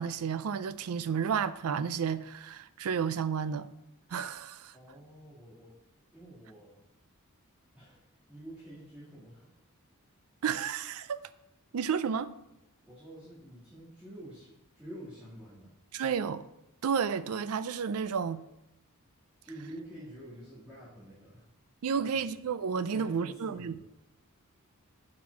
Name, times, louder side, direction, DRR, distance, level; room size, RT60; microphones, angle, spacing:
voice 1, 0.0-3.7 4.1-4.7 10.4-11.2 11.7-12.3 15.9-16.4 16.8-18.4 21.8-23.8, right 6 dB, 80° right, 0.4 m, -31 dB
voice 2, 4.7-5.9 6.1-6.8 7.7-9.5 12.8-15.8 19.4-21.5 21.9-22.4 22.9-23.8, right 1 dB, 5° right, 2.4 m, -48 dB
7.5 x 6.0 x 4.7 m
head